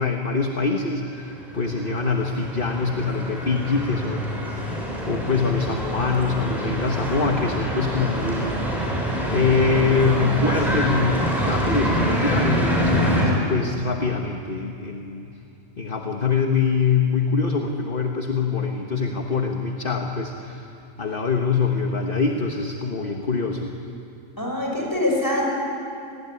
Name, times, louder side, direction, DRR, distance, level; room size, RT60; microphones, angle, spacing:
voice 1, 0.0-4.5 5.1-9.0 9.3-15.3 15.8-20.7 21.0-23.7, left 4 dB, 45° left, 2 dB, 1.6 m, -24 dB
sound 1, 1.2-13.3, equal, ahead, 7.0 m, -25 dB
voice 2, 24.4-25.5, left 1 dB, 15° left, -1 dB, 6.3 m, -24 dB
28.0 x 19.5 x 9.7 m, 2.6 s
omnidirectional pair, 1.3 m